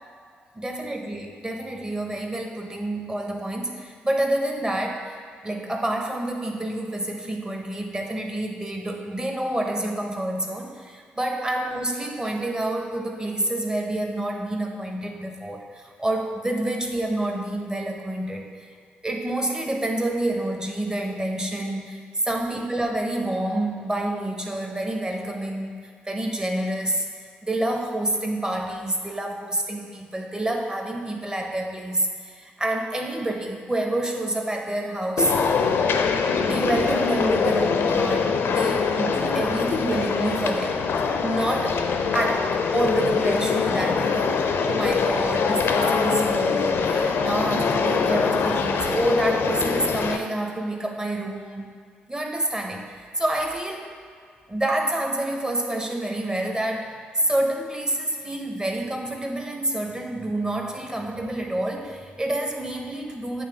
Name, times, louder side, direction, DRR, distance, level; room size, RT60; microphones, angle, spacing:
voice 1, 0.6-5.2 5.4-18.8 19.0-27.1 27.4-35.3 36.4-40.9 41.2-41.8 42.1-51.7 52.1-53.9 54.5-63.5, right 1 dB, 15° right, 2 dB, 0.9 m, -28 dB
sound 1, 35.2-50.2, left 5 dB, 60° left, 0.5 m, -23 dB
8.7 x 3.4 x 3.4 m, 2.1 s
hypercardioid pair, 45°, 4 cm